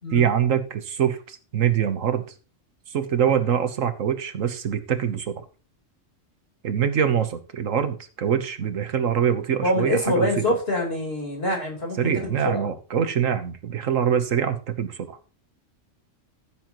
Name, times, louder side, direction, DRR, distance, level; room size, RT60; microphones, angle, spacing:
voice 1, 0.1-2.3 2.9-5.4 6.6-10.4 12.0-15.2, right 8 dB, 85° right, 10 dB, 1.5 m, -24 dB
voice 2, 9.6-12.0 12.2-12.7, left 1 dB, 50° left, 0 dB, 4.3 m, -25 dB
14.5 x 7.7 x 3.1 m, 0.35 s
omnidirectional pair, 1.3 m